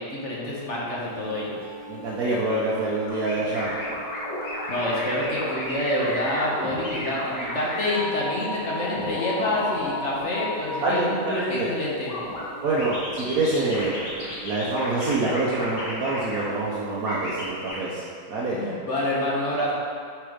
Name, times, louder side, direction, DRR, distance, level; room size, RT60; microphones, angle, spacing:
voice 1, 0.0-1.6 4.7-12.1 18.5-19.7, left 1 dB, 45° left, -5 dB, 1.4 m, -27 dB
sound 1, 1.0-17.7, right 3 dB, 30° right, 1.4 m, -42 dB
voice 2, 1.9-3.7 10.8-11.7 12.6-18.6, right 2 dB, 65° right, -7 dB, 1.3 m, -26 dB
sound 2, 3.1-11.0 12.1-12.4 12.8-16.4 17.0-17.8, left 1 dB, 80° left, 2.2 m, -33 dB
7.7 x 4.3 x 5.0 m, 2.2 s
omnidirectional pair, 1.8 m